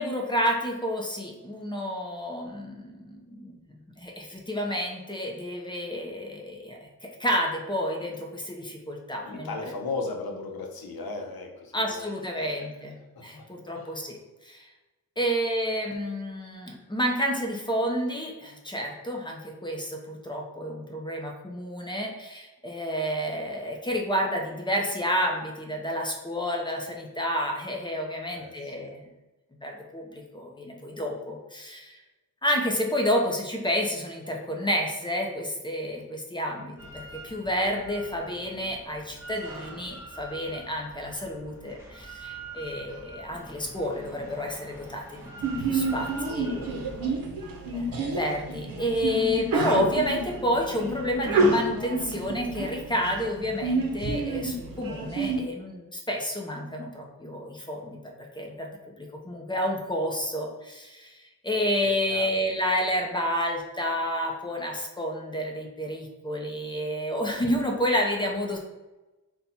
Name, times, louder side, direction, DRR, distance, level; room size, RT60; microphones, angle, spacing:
voice 1, 0.0-9.7 11.7-14.2 14.4-14.7 15.2-29.0 29.5-32.0 32.4-45.3 45.6-46.9 47.7-68.6, equal, 15° left, 0 dB, 0.6 m, -30 dB
voice 2, 9.1-12.7 13.2-13.5 13.8-14.0 28.3-28.9 45.7-46.8 62.1-62.4, left 3 dB, 80° left, 2 dB, 0.8 m, -38 dB
Drill, 36.8-47.1, right 2 dB, 10° right, 1.0 m, -44 dB
Sneeze, 45.4-55.4, right 2 dB, 70° right, 0.7 m, -29 dB
4.1 x 2.3 x 4.1 m, 1.1 s
wide cardioid pair, 140°, 36 cm